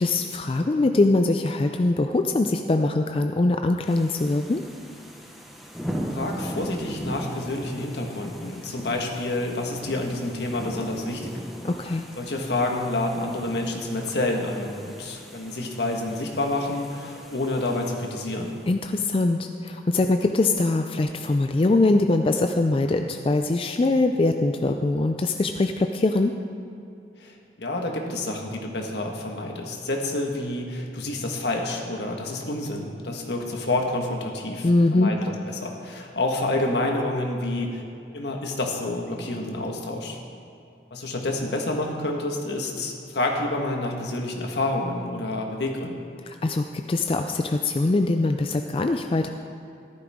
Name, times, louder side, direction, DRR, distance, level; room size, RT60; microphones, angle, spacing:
voice 1, 0.0-4.6 11.6-12.0 18.7-26.4 34.6-35.1 46.3-49.3, left 2 dB, 30° left, 6 dB, 0.4 m, -22 dB
sound 1, 3.9-18.6, equal, ahead, 1.0 m, -39 dB
voice 2, 6.1-11.3 11.9-18.6 27.2-35.2 35.5-37.8 38.1-40.2 40.9-46.0, left 2 dB, 75° left, 1 dB, 1.5 m, -28 dB
14.0 x 12.0 x 3.6 m, 2.5 s
head